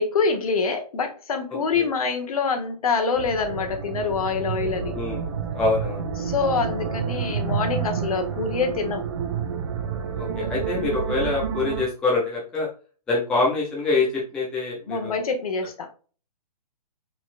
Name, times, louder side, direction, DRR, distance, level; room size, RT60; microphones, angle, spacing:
voice 1, 0.0-4.9 6.2-9.1 14.9-15.9, left 4 dB, 60° left, 5 dB, 1.2 m, -25 dB
sound 1, 3.2-11.9, right 7 dB, 40° right, 0.6 m, -29 dB
voice 2, 4.9-5.3 5.5-6.0 10.2-12.7 13.1-15.2, left 3 dB, 5° left, -4 dB, 0.4 m, -25 dB
4.1 x 4.0 x 2.5 m, 0.37 s
hypercardioid pair, 160°, 21 cm